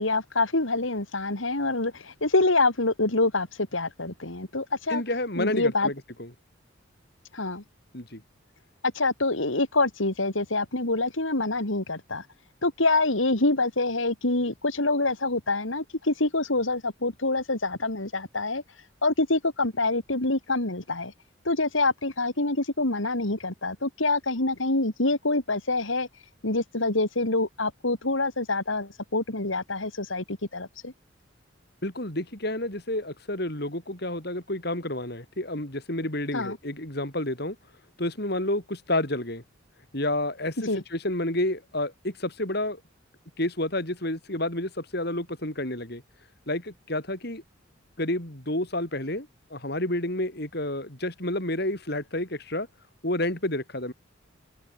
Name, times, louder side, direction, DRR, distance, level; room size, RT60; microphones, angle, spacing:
voice 1, 0.0-5.0 5.4-5.9 7.3-7.6 8.9-12.3 12.6-18.6 19.0-21.1 21.4-26.1 26.4-30.9 36.3-36.6 40.6-40.8, left 2 dB, 80° left, 3.4 m, -26 dB
voice 2, 4.9-5.9 6.2-6.3 7.9-8.2 31.8-37.6 38.0-39.4 39.9-42.8 43.4-46.0 46.5-47.4 48.0-52.7 53.0-53.9, left 1 dB, 55° left, 5.2 m, -30 dB
open air
head